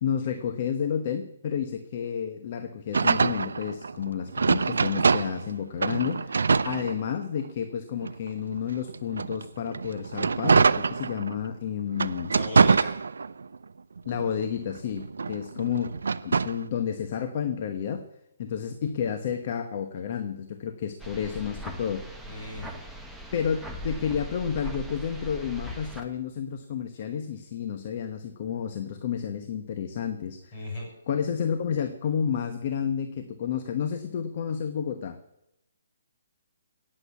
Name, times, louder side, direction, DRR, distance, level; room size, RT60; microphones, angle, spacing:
voice 1, 0.0-12.3 14.1-18.0 18.4-22.1 22.4-22.5 23.3-30.6 31.1-35.2, left 8 dB, 40° left, 8 dB, 1.1 m, -31 dB
sound 1, 2.9-5.5 5.8-7.5 8.0-11.5 11.9-13.6 14.0-16.6, right 4 dB, 80° right, 0.6 m, -25 dB
voice 2, 12.3-13.0 22.3-22.7 30.5-30.9, left 2 dB, 25° left, -1 dB, 7.5 m, -37 dB
sound 2, 21.0-26.0, right 1 dB, ahead, 1.0 m, -40 dB
17.0 x 7.8 x 8.3 m, 0.83 s
hypercardioid pair, 160°, 0 cm